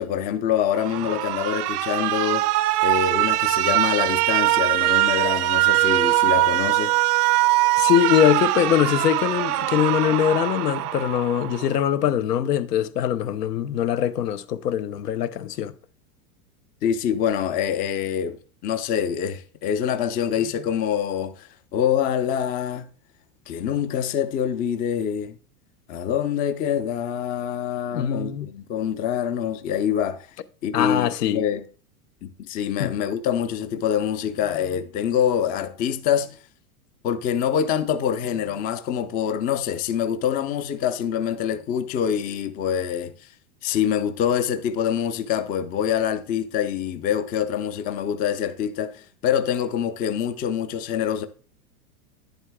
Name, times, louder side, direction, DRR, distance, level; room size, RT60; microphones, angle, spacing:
voice 1, 0.0-2.5 2.8-7.0 16.8-22.9 23.5-25.4 25.9-30.3 30.6-31.6 32.2-36.4 37.0-43.1 43.6-51.3, left 9 dB, 20° left, 0.3 m, -25 dB
Alarm, 0.7-11.8, right 17 dB, 70° right, 0.6 m, -22 dB
voice 2, 7.8-15.7 27.9-28.5 30.7-31.4 32.8-32.9, left 10 dB, 85° left, 0.7 m, -22 dB
10.0 x 7.9 x 2.2 m
hypercardioid pair, 110°, 47 cm